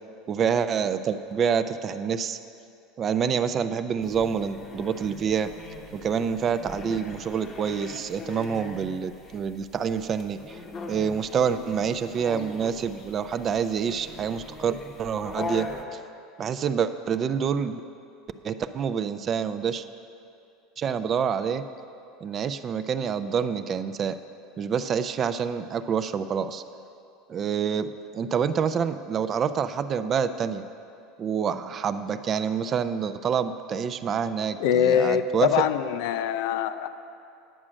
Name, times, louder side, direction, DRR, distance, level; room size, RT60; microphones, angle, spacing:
voice 1, 0.3-2.4 3.0-5.5 5.9-10.6 10.9-16.0 16.4-17.8 18.4-19.8 20.8-21.6 22.2-24.2 24.6-26.6 27.3-30.6 31.2-35.5, right 7 dB, 30° right, 12 dB, 0.4 m, -27 dB
sound 1, 4.0-15.8, left 3 dB, 25° left, 0.8 m, -41 dB
voice 2, 34.6-36.9, left 9 dB, 70° left, 11 dB, 0.5 m, -23 dB
9.9 x 7.5 x 6.2 m, 2.6 s
supercardioid pair, 150°, 0 cm